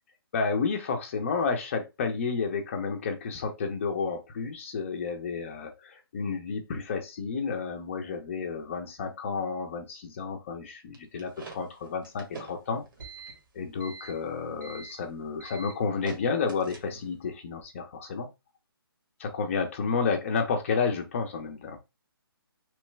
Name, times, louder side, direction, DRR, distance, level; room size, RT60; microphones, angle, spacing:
voice 1, 0.3-12.8 13.5-18.3 19.2-21.8, left 5 dB, 30° left, 4 dB, 0.7 m, -31 dB
sound 1, 10.9-17.2, right 4 dB, 55° right, 1.2 m, -45 dB
3.1 x 2.2 x 3.2 m, 0.25 s
hypercardioid pair, 160°, 13 cm